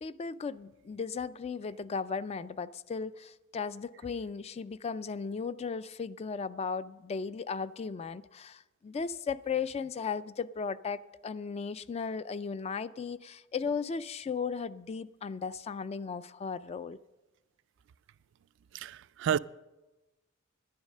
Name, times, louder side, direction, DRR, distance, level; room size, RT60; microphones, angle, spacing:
voice 1, 0.0-17.0, left 5 dB, 30° left, 0.3 m, -36 dB
voice 2, 18.7-19.4, right 8 dB, 65° right, 0.3 m, -30 dB
10.5 x 10.5 x 6.5 m
head